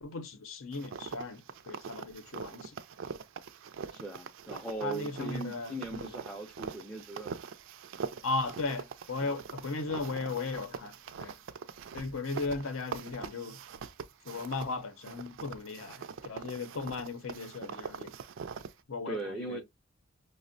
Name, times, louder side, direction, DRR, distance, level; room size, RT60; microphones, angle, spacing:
voice 1, 0.0-2.7 4.8-6.1 8.2-10.9 11.2-11.4 11.9-13.6 14.3-18.1 18.9-19.6, left 3 dB, 75° left, 0.6 m, -36 dB
sound 1, 0.7-14.7 15.0-18.8, right 6 dB, 65° right, 0.3 m, -43 dB
voice 2, 3.9-7.3 19.1-19.6, right 2 dB, ahead, 0.4 m, -39 dB
5.1 x 2.0 x 2.5 m
head